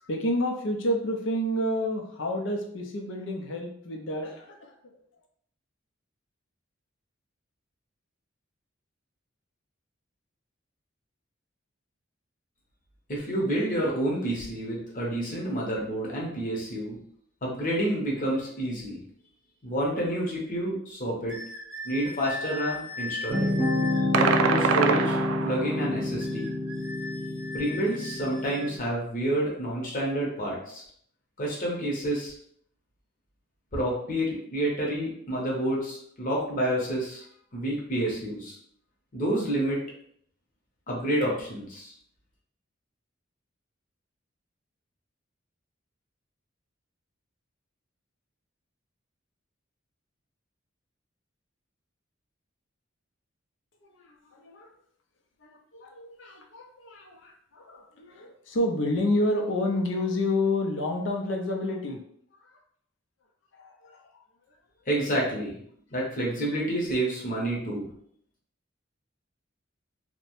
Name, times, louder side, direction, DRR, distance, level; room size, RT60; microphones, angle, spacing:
voice 1, 0.0-4.7 53.8-54.7 55.4-62.0 63.5-64.0, left 1 dB, 65° left, 2 dB, 0.5 m, -29 dB
voice 2, 13.1-17.0 17.4-19.0 19.6-21.4 21.8-23.5 24.0-25.2 25.4-26.5 27.5-30.8 31.4-32.3 33.7-37.2 37.5-38.6 39.1-39.8 40.9-41.9 64.9-65.6 65.9-67.9, right 1 dB, 45° left, -3 dB, 0.9 m, -29 dB
sound 1, 21.3-24.1 26.2-28.8, left 2 dB, 10° right, 0.9 m, -38 dB
sound 2, 23.3-28.8, left 1 dB, 40° right, 0.8 m, -28 dB
sound 3, 24.1-25.9, right 5 dB, 80° right, 0.3 m, -25 dB
2.9 x 2.1 x 3.0 m, 0.65 s
head